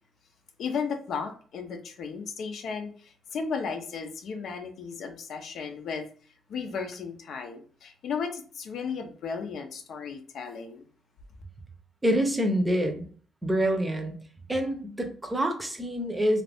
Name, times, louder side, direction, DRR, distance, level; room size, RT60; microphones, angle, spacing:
voice 1, 0.6-6.1 6.5-10.8, left 5 dB, 70° left, 4 dB, 0.6 m, -35 dB
voice 2, 12.0-13.1 13.4-14.2 14.5-16.4, equal, 15° right, 5 dB, 0.7 m, -26 dB
2.6 x 2.4 x 3.4 m, 0.42 s
cardioid pair, 90°, 0 cm